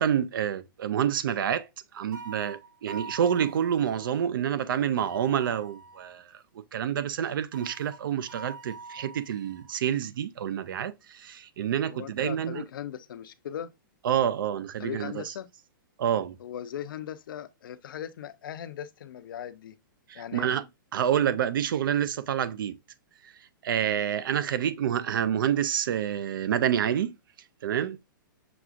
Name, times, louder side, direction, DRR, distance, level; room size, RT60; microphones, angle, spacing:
voice 1, 0.0-1.7 1.9-6.3 6.7-12.6 14.0-15.3 16.0-16.4 20.1-20.7 20.9-22.8 23.6-27.1 27.6-28.0, right 9 dB, 75° right, 0.4 m, -28 dB
sound 1, 2.1-4.2 5.0-6.2 7.5-9.7, right 4 dB, 55° right, 0.9 m, -45 dB
voice 2, 11.8-13.7 14.8-15.5 16.4-19.8 20.1-20.5, left 10 dB, 75° left, 0.5 m, -38 dB
6.0 x 2.4 x 2.4 m
hypercardioid pair, 155°, 11 cm